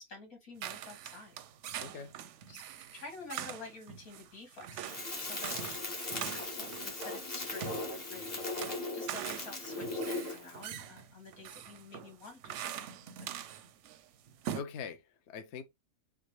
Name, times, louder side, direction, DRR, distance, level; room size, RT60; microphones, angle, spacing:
voice 1, 0.0-1.4 2.5-2.6 2.9-13.3, left 3 dB, 75° left, 2.5 m, -50 dB
sound 1, 0.6-14.0 14.3-14.6, right 9 dB, 65° right, 0.8 m, -43 dB
voice 2, 1.8-2.1 14.5-15.6, left 6 dB, 60° left, 0.8 m, -42 dB
Crackle, 4.9-10.6, left 2 dB, 30° left, 1.4 m, -38 dB
5.8 x 2.5 x 3.1 m
omnidirectional pair, 1.5 m